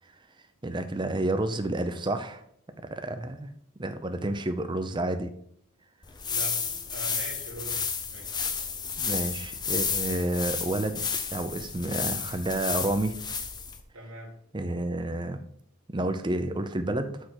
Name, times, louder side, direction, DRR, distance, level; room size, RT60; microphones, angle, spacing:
voice 1, 0.6-2.4 2.9-3.5 3.8-5.3 9.0-11.0 11.3-13.2 14.5-15.4 15.9-17.3, right 1 dB, 20° right, 8 dB, 0.6 m, -30 dB
sound 1, 6.0-13.8, left 6 dB, 20° left, 0.6 m, -32 dB
voice 2, 6.3-8.4 13.9-14.4, right 1 dB, 60° right, -3 dB, 1.8 m, -42 dB
6.5 x 4.5 x 6.5 m, 0.68 s
head